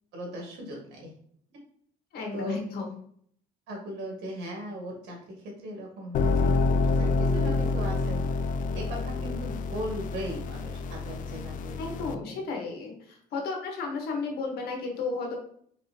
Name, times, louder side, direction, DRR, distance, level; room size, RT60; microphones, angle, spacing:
voice 1, 0.1-1.1 2.3-2.6 3.7-8.3 8.7-12.4, equal, 80° right, 0 dB, 1.8 m, -38 dB
voice 2, 2.1-2.9 11.8-15.4, left 4 dB, 70° left, 2 dB, 1.3 m, -33 dB
sound 1, 6.1-12.1, left 3 dB, 50° left, 0.4 m, -27 dB
4.1 x 3.5 x 2.8 m, 0.63 s
cardioid pair, 110°, 17 cm